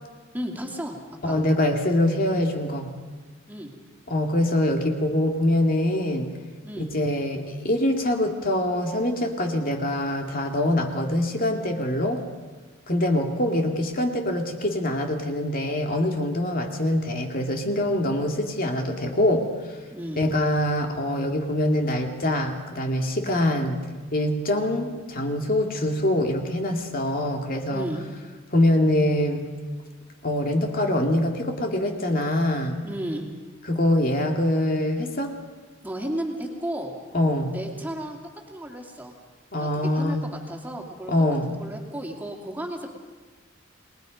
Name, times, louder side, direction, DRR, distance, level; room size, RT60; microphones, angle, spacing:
voice 1, 0.3-1.0 1.3-1.4 3.5-3.7 6.6-6.9 19.9-20.2 27.7-28.0 32.8-33.3 35.8-36.9 37.5-38.2 38.5-39.1 39.6-41.1 41.5-43.0, right 1 dB, 10° right, 1 dB, 2.8 m, -33 dB
voice 2, 1.2-2.9 4.1-6.3 6.8-12.2 12.9-19.5 20.2-23.8 24.1-27.9 28.5-29.4 30.2-32.8 33.6-35.3 37.1-37.5 39.5-40.3 41.1-41.5, left 1 dB, 45° left, 3 dB, 2.4 m, -24 dB
29.5 x 20.5 x 5.3 m, 1.4 s
head